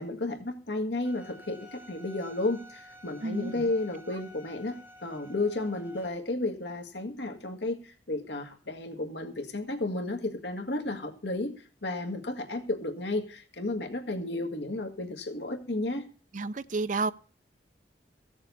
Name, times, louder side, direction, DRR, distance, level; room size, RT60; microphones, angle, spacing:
voice 1, 0.0-4.8 5.0-16.0, left 2 dB, 75° left, 1.7 m, -33 dB
Bowed string instrument, 1.0-6.1, equal, 10° right, 2.3 m, -51 dB
voice 2, 3.2-3.7 4.1-4.2 16.3-17.1, right 3 dB, 45° right, 0.6 m, -31 dB
15.0 x 7.1 x 6.9 m
head